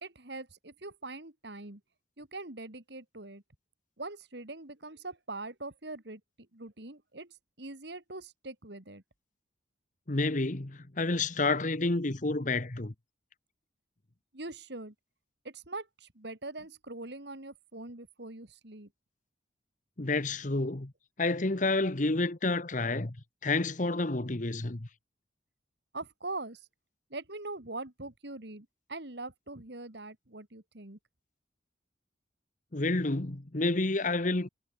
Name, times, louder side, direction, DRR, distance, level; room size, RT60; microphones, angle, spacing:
voice 1, 0.0-1.8 2.2-3.4 4.0-6.2 6.5-9.0 14.3-14.9 15.4-18.9 25.9-26.7 27.1-31.0, right 2 dB, 60° right, 2.5 m, -42 dB
voice 2, 10.1-12.9 20.0-20.9 21.2-23.2 23.4-24.9 32.7-34.5, left 2 dB, 40° left, 1.2 m, -29 dB
head